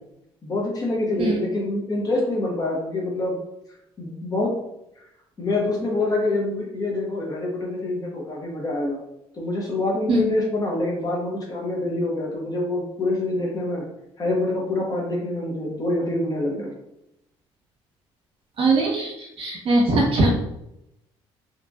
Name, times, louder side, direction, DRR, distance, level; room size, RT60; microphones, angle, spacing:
voice 1, 0.4-3.4 4.0-4.5 5.4-9.0 9.3-13.8 14.2-16.7, left 2 dB, 35° left, -2 dB, 0.9 m, -26 dB
voice 2, 18.6-20.3, right 2 dB, 55° right, -2 dB, 0.9 m, -21 dB
2.9 x 2.6 x 2.3 m, 0.83 s
cardioid pair, 90°, 11 cm